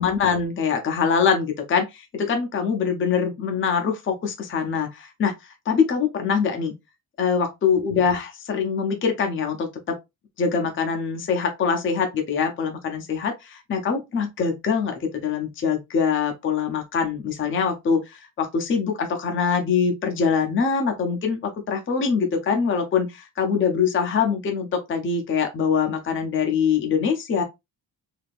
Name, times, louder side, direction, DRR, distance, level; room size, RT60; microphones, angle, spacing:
voice 1, 0.0-5.3 5.7-6.7 7.2-10.0 10.4-27.4, left 6 dB, 30° left, 0.6 m, -23 dB
3.5 x 2.7 x 2.4 m
wide cardioid pair, 180°, 41 cm